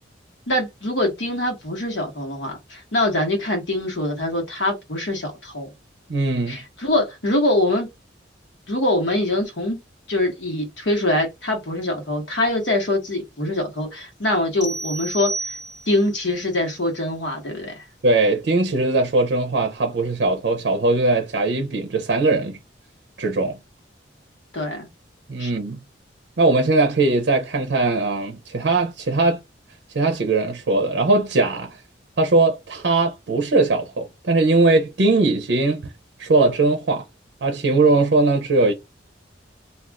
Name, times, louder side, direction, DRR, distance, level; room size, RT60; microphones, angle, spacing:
voice 1, 0.5-5.7 6.5-7.9 8.7-9.8 10.1-15.3 15.9-17.8 24.5-24.9 25.4-25.5, left 1 dB, 75° left, 1.1 m, -23 dB
voice 2, 6.1-6.6 18.0-22.6 23.2-23.6 25.3-25.8 26.4-29.4 29.9-31.7 32.2-35.9 36.2-37.0 37.4-38.7, right 3 dB, 65° right, 0.5 m, -20 dB
sound 1, 14.6-16.1, right 2 dB, ahead, 0.7 m, -31 dB
2.4 x 2.3 x 3.4 m
head